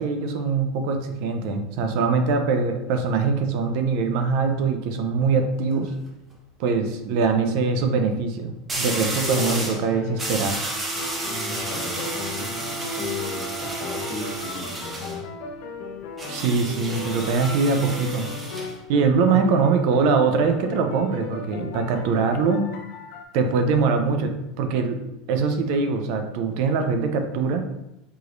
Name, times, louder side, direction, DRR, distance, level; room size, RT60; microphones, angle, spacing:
voice 1, 0.0-5.9 6.6-10.6 16.3-18.3 18.9-22.7 23.3-25.0 25.3-27.6, right 4 dB, 60° right, 6 dB, 0.5 m, -23 dB
sound 1, 5.5-5.9 8.7-9.8 10.2-15.2 16.2-18.7, right 2 dB, 20° right, 0.9 m, -31 dB
sound 2, 9.2-10.6 11.0-17.5 17.9-23.2, left 5 dB, 65° left, 0.7 m, -36 dB
voice 2, 11.3-15.2, left 2 dB, 45° left, -3 dB, 1.4 m, -37 dB
4.7 x 3.0 x 2.5 m, 0.93 s
supercardioid pair, 125°, 0 cm